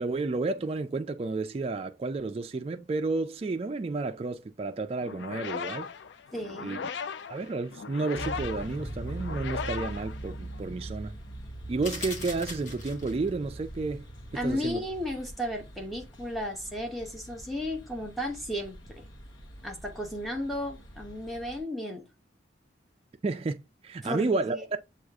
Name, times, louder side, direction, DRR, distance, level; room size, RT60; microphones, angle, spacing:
voice 1, 0.0-5.9 6.6-6.8 7.3-11.1 11.7-14.1 14.4-14.8 23.2-23.6 23.8-24.8, right 3 dB, 30° right, 0.3 m, -31 dB
sound 1, 5.0-10.8, left 6 dB, 65° left, 0.4 m, -38 dB
voice 2, 6.3-6.9 14.3-19.0 19.6-22.0 24.0-24.6, left 1 dB, ahead, 0.8 m, -34 dB
sound 2, 8.1-21.6, right 1 dB, 80° left, 0.9 m, -42 dB
sound 3, 11.8-13.3, left 3 dB, 40° left, 0.9 m, -40 dB
6.3 x 2.4 x 3.4 m
head